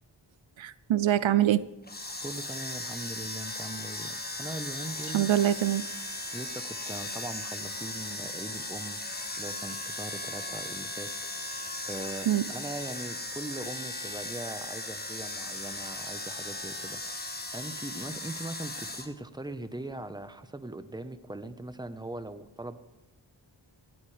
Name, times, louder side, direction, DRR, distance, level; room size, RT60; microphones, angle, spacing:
voice 1, 0.6-1.6 5.1-5.8 12.3-12.4, right 12 dB, 75° right, 17 dB, 0.6 m, -24 dB
sound 1, 1.8-19.1, left 2 dB, 20° left, 1.6 m, -37 dB
voice 2, 2.2-5.3 6.3-9.0 9.4-11.1 11.4-22.8, right 2 dB, 10° right, 10 dB, 1.0 m, -40 dB
16.5 x 13.5 x 3.4 m, 1.0 s
wide cardioid pair, 50°, 46 cm